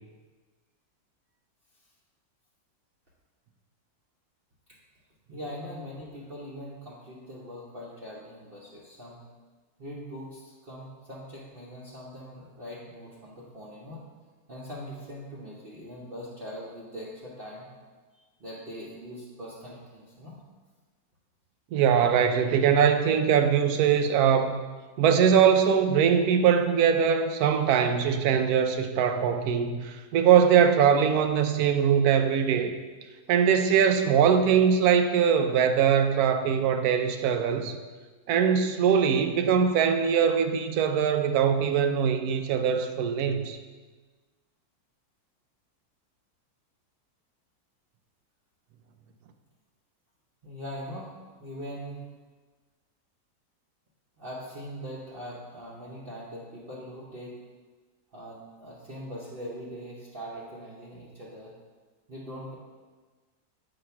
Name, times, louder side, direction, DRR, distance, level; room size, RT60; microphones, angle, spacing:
voice 1, 5.3-9.2 9.8-14.0 14.5-17.7 18.4-20.4 50.4-51.1 51.4-52.0 54.2-57.4 58.1-61.5 62.1-62.5, equal, 45° right, -6 dB, 0.9 m, -41 dB
voice 2, 21.7-24.6 25.0-32.8 33.3-37.8 38.3-43.6, right 7 dB, 75° right, 8 dB, 1.0 m, -22 dB
7.8 x 2.9 x 5.6 m, 1.4 s
omnidirectional pair, 1.6 m